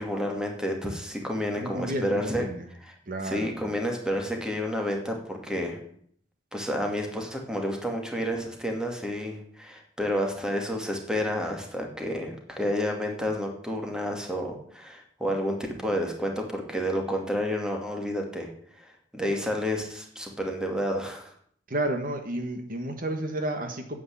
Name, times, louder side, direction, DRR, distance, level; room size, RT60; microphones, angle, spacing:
voice 1, 0.0-2.5 3.2-5.8 6.5-18.5 18.8-21.3, equal, 5° right, 2 dB, 2.3 m, -30 dB
voice 2, 1.6-2.7 3.1-3.5 21.7-24.0, right 1 dB, 50° right, 6 dB, 1.6 m, -31 dB
9.7 x 8.5 x 8.6 m, 0.62 s
head